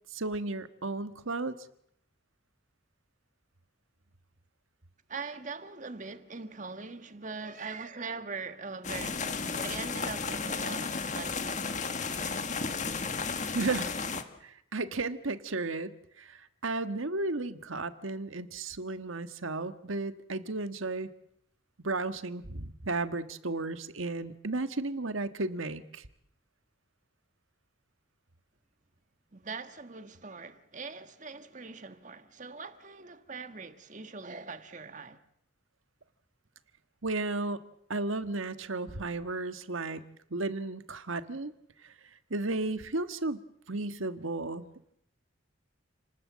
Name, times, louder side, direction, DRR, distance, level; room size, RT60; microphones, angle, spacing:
voice 1, 0.1-1.5 13.5-14.0 14.4-21.1 21.8-26.1 37.0-37.6 37.9-40.0 40.3-41.5 41.8-41.9 42.3-43.4 43.7-44.7, right 2 dB, 85° right, 1.5 m, -34 dB
voice 2, 5.1-12.3 29.3-35.2, right 4 dB, 40° right, 1.6 m, -42 dB
sound 1, 8.8-14.2, left 4 dB, 35° left, 1.7 m, -33 dB
30.0 x 19.5 x 7.5 m
head